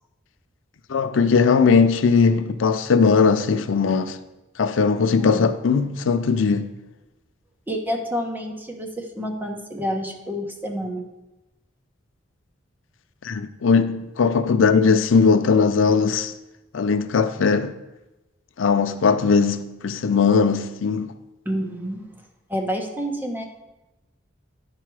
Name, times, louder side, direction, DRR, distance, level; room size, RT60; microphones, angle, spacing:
voice 1, 0.9-4.2 4.6-6.7 13.2-16.3 16.7-17.7 18.6-21.1, left 5 dB, 85° left, 0.5 m, -19 dB
voice 2, 5.2-5.5 7.7-11.1 21.4-22.0 22.5-23.4, equal, 10° right, 1.0 m, -28 dB
11.0 x 4.7 x 4.7 m
head